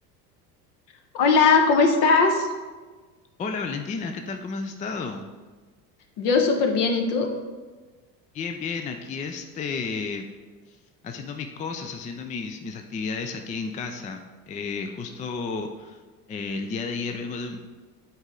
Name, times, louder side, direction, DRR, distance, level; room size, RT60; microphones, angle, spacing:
voice 1, 1.1-2.5 6.2-7.3, left 4 dB, 55° left, 4 dB, 1.2 m, -19 dB
voice 2, 3.4-5.3 8.3-10.2 10.7-10.8 11.0-16.0 16.3-17.6, left 4 dB, 15° left, 5 dB, 0.3 m, -32 dB
8.0 x 4.4 x 3.8 m, 1.3 s
hypercardioid pair, 75°, 49 cm